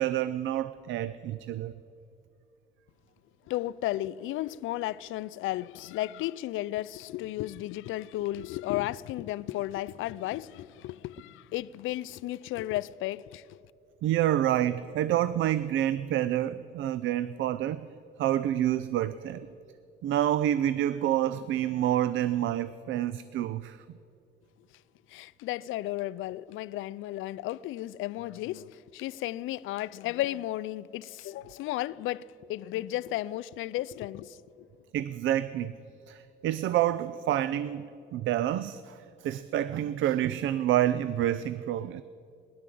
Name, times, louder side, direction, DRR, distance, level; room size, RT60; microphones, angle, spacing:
voice 1, 0.0-1.7 14.0-17.9 18.2-19.5 20.0-23.8 34.9-35.7 36.1-42.0, right 12 dB, 75° right, 0.4 m, -28 dB
voice 2, 3.5-13.6 25.1-34.7, left 15 dB, 85° left, 0.4 m, -34 dB
16.0 x 11.5 x 7.7 m
cardioid pair, 90°, 20 cm